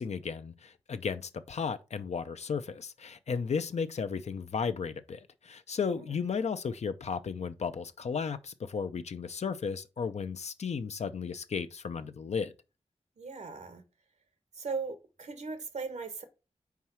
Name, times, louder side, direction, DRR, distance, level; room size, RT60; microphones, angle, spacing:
voice 1, 0.0-12.5, left 6 dB, 70° left, 0.6 m, -34 dB
voice 2, 13.2-13.8 14.5-16.2, right 4 dB, 85° right, 1.4 m, -38 dB
4.7 x 4.7 x 5.6 m
wide cardioid pair, 115°, 12 cm